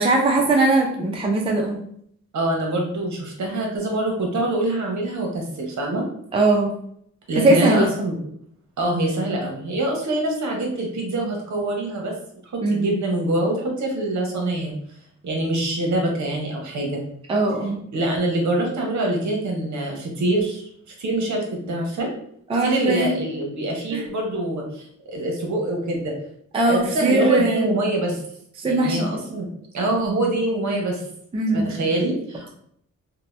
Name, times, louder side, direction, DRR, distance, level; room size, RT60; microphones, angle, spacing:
voice 1, 0.0-1.8 6.3-6.7 7.3-7.9 12.6-12.9 17.3-17.8 22.5-23.1 23.9-24.1 26.5-27.7 28.6-29.1 31.3-31.7, right 2 dB, 20° right, 0 dB, 0.4 m, -20 dB
voice 2, 2.3-6.0 7.3-8.2 8.8-12.1 12.7-14.7 15.2-17.0 17.9-20.7 21.0-22.1 22.6-26.1 26.6-28.2 28.6-29.5 29.7-31.0 31.5-32.5, right 1 dB, 65° right, 0 dB, 0.9 m, -24 dB
2.8 x 2.1 x 3.2 m, 0.68 s
wide cardioid pair, 145°, 31 cm